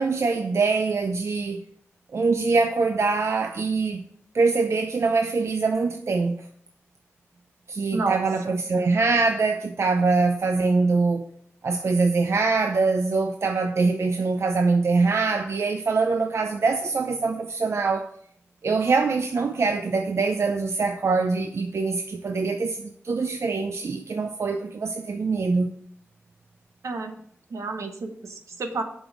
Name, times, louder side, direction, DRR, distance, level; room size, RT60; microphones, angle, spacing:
voice 1, 0.0-1.6 2.1-4.0 4.3-6.5 7.7-11.3 11.6-18.1 18.6-25.7, right 4 dB, 65° right, 0.6 m, -23 dB
voice 2, 7.9-8.6 26.8-27.1 27.5-28.8, right 3 dB, 80° right, 1.1 m, -30 dB
7.0 x 5.3 x 6.3 m
cardioid pair, 55°, 5 cm